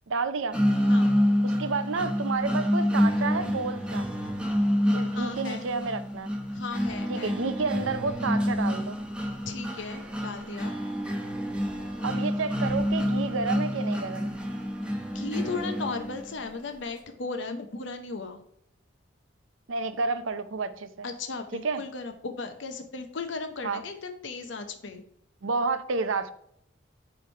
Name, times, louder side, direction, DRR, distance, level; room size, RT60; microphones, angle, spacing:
voice 1, 0.1-0.6 1.4-4.1 4.9-6.3 7.1-9.0 12.0-14.4 19.7-21.1 21.5-21.8 23.6-23.8 25.4-26.3, right 4 dB, 85° right, 0.6 m, -30 dB
sound 1, 0.5-16.5, equal, 5° right, 0.9 m, -28 dB
voice 2, 5.2-5.7 6.5-7.4 9.5-10.8 15.1-18.4 21.0-25.0, left 4 dB, 70° left, 0.8 m, -36 dB
9.5 x 3.3 x 4.4 m
head